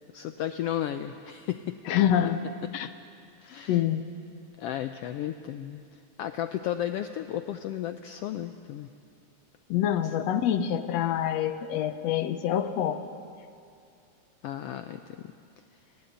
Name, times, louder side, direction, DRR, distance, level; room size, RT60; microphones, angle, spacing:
voice 1, 0.1-1.8 2.8-2.9 3.4-3.8 4.6-5.8 6.2-8.9 14.4-15.0, left 11 dB, 85° left, 9 dB, 1.3 m, -33 dB
voice 2, 1.9-2.5 2.7-2.9 3.7-4.1 9.7-13.0, left 10 dB, 70° left, 10 dB, 1.8 m, -26 dB
19.5 x 15.5 x 9.9 m, 2.5 s
omnidirectional pair, 3.4 m